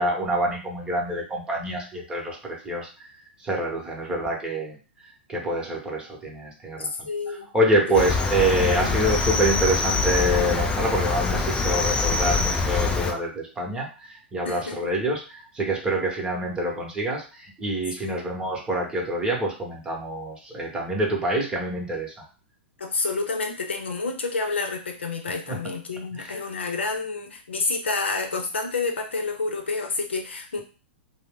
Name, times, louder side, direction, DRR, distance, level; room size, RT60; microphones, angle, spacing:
voice 1, 0.0-3.1 3.4-4.8 5.3-6.9 7.3-22.2 25.5-25.6 26.1-26.4, right 1 dB, 15° right, -1 dB, 1.0 m, -26 dB
voice 2, 6.8-7.5 7.9-8.0 8.8-8.9 14.5-14.9 18.0-18.2 22.8-30.6, left 3 dB, 85° left, 4 dB, 0.7 m, -29 dB
Cricket, 7.9-13.1, left 4 dB, 15° left, 0.4 m, -24 dB
2.5 x 2.0 x 3.6 m, 0.34 s
hypercardioid pair, 110°, 6 cm